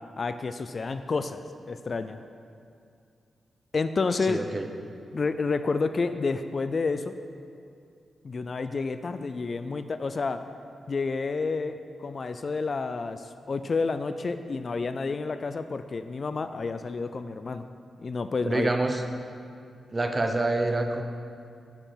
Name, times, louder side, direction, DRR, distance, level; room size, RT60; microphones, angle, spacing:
voice 1, 0.2-2.2 3.7-4.4 5.1-7.1 8.2-10.4 10.9-17.7 18.0-18.7, left 4 dB, 45° left, 10 dB, 0.3 m, -30 dB
voice 2, 4.3-4.6 18.4-19.0 19.9-21.0, right 2 dB, 25° right, 5 dB, 0.7 m, -26 dB
8.1 x 6.5 x 5.7 m, 2.4 s
wide cardioid pair, 110°, 0 cm